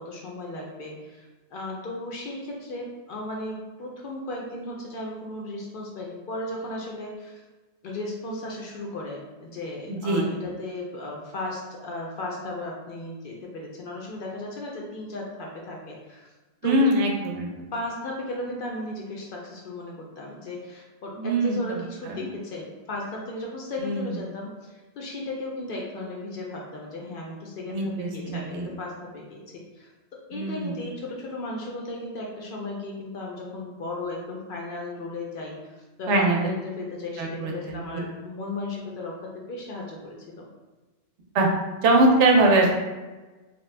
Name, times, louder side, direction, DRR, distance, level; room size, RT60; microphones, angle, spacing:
voice 1, 0.0-7.4 7.8-16.3 16.6-16.8 17.7-40.4, left 2 dB, 60° left, -1 dB, 0.6 m, -35 dB
voice 2, 9.9-10.2 16.6-17.5 21.2-21.6 22.1-22.3 23.8-24.1 27.7-28.7 30.3-30.8 36.1-36.4 37.2-37.8 41.3-41.5 41.8-42.7, right 2 dB, 85° right, 1 dB, 0.9 m, -22 dB
2.9 x 2.2 x 3.2 m, 1.2 s
omnidirectional pair, 1.2 m